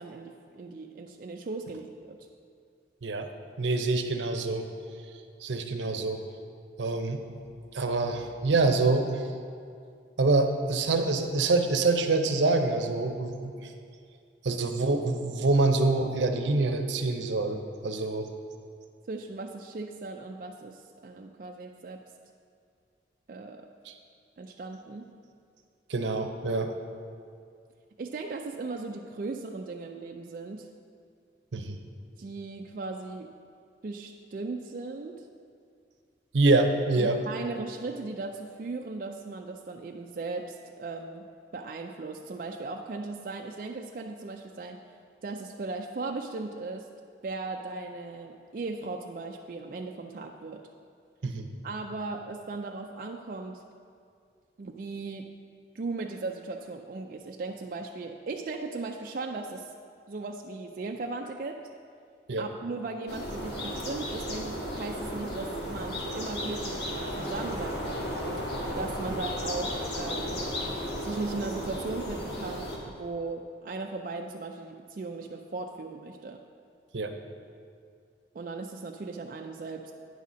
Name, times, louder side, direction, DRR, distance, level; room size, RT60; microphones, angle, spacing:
voice 1, 0.0-2.2 19.1-22.0 23.3-23.7 24.4-25.1 28.0-30.7 32.2-33.3 33.8-35.2 37.0-41.3 41.5-44.8 45.2-46.9 47.2-50.6 51.6-53.6 54.6-55.3 55.7-59.7 60.1-61.6 62.4-70.5 71.0-76.4 78.3-79.9, right 3 dB, 50° right, 2 dB, 0.3 m, -37 dB
voice 2, 3.6-4.7 5.4-6.2 6.8-7.2 7.7-9.2 10.2-13.4 13.6-13.7 14.4-18.3 23.9-24.0 25.9-26.7 31.5-31.8 36.3-37.2 51.2-51.5 62.3-62.4 76.9-77.1, right 3 dB, 80° right, 6 dB, 0.7 m, -26 dB
sound 1, 63.1-72.8, equal, 65° left, 1.3 m, -34 dB
9.4 x 4.2 x 6.1 m, 2.3 s
head